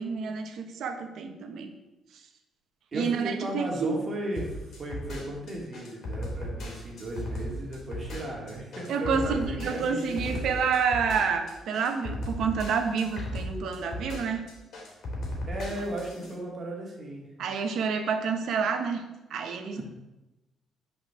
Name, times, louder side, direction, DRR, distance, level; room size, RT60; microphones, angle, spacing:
voice 1, 0.0-1.7 2.9-4.0 8.9-14.5 17.4-19.8, right 5 dB, 65° right, 5 dB, 1.4 m, -29 dB
voice 2, 2.9-10.6 15.5-17.3 19.7-19.8, right 1 dB, 30° right, -2 dB, 2.8 m, -36 dB
sound 1, 4.4-16.3, equal, 50° left, 3.6 m, -36 dB
9.1 x 5.6 x 8.0 m, 1.0 s
cardioid pair, 170°, 0 cm